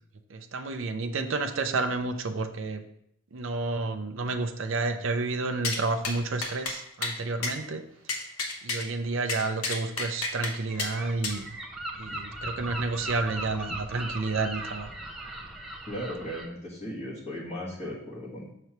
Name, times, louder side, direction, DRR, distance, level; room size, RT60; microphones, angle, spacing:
voice 1, 0.3-2.8 3.3-7.8 8.6-11.6 12.0-14.9, right 3 dB, 60° right, 6 dB, 0.5 m, -30 dB
sound 1, 5.6-5.8 6.0-6.2 6.4-6.8 7.0-7.2 7.4-7.5 8.1-8.8 9.3-10.5 10.8-10.9 11.2-11.4, left 3 dB, 85° left, 1.0 m, -30 dB
Gull seagull, 10.7-16.5, right 1 dB, ahead, 0.5 m, -38 dB
voice 2, 15.9-18.5, equal, 30° left, -5 dB, 1.3 m, -36 dB
6.6 x 3.1 x 5.8 m, 0.73 s
head